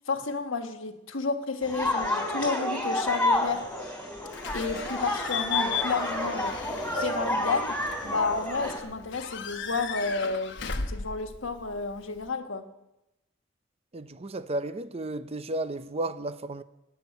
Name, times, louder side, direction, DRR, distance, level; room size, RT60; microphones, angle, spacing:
voice 1, 0.1-3.6 4.5-6.6 7.0-7.7 8.0-10.6 10.9-12.7, left 4 dB, 90° left, 1.4 m, -31 dB
sound 1, 1.6-8.8, left 1 dB, 10° left, 3.4 m, -30 dB
Slam / Squeak / Alarm, 4.3-12.3, left 6 dB, 65° left, 1.1 m, -36 dB
voice 2, 13.9-16.6, right 2 dB, 30° right, 0.6 m, -33 dB
18.0 x 7.1 x 9.4 m
head